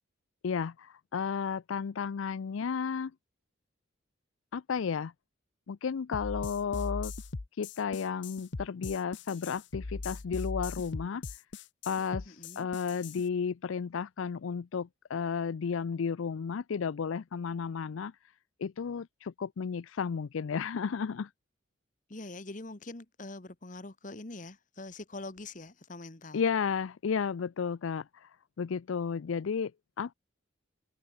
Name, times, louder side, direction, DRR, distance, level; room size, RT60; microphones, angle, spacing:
voice 1, 0.4-3.1 4.5-5.1 5.7-7.1 7.6-11.2 11.9-18.1 18.6-21.3 26.3-28.3 28.6-29.7 30.0-30.1, left 6 dB, 75° left, 0.4 m, -33 dB
sound 1, 6.1-13.2, left 3 dB, 60° left, 0.9 m, -39 dB
voice 2, 12.3-12.7 22.1-26.4, left 2 dB, 40° left, 1.3 m, -44 dB
head